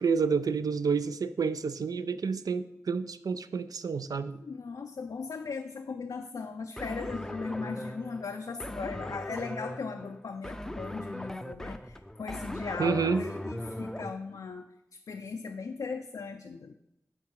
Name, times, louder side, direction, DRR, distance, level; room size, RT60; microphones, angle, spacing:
voice 1, 0.0-4.4 12.8-13.2, right 5 dB, 80° right, 12 dB, 0.4 m, -29 dB
voice 2, 4.4-16.7, left 4 dB, 80° left, 5 dB, 0.4 m, -38 dB
sound 1, 6.8-14.1, left 1 dB, 10° left, 0.4 m, -39 dB
8.9 x 3.7 x 4.7 m, 0.86 s
cardioid pair, 50°, 6 cm